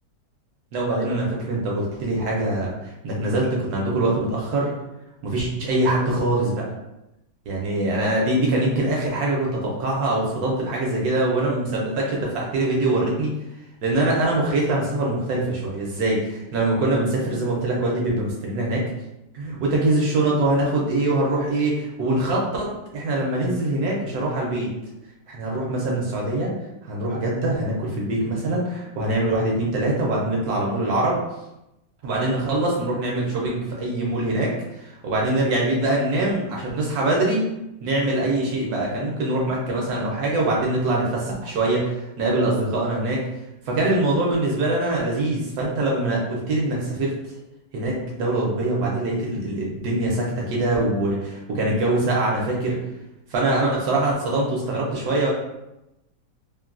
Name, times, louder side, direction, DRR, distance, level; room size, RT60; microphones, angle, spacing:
voice 1, 0.7-4.7 5.2-6.7 7.5-13.3 13.8-18.9 19.3-24.7 25.3-26.5 26.8-31.2 32.0-37.5 37.8-43.2 43.7-47.1 47.7-52.8 53.3-55.3, right 2 dB, 70° right, -3 dB, 1.0 m, -23 dB
3.1 x 2.2 x 2.4 m, 0.92 s
omnidirectional pair, 1.9 m